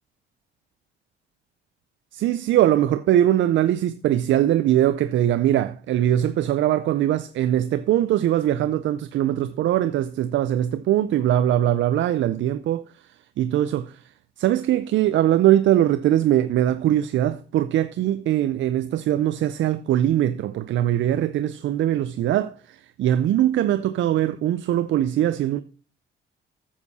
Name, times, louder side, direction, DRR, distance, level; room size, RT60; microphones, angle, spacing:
voice 1, 2.1-12.9 13.4-14.0 14.4-25.6, right 12 dB, 70° right, 0.5 m, -21 dB
9.3 x 7.4 x 4.1 m
cardioid pair, 90°, 20 cm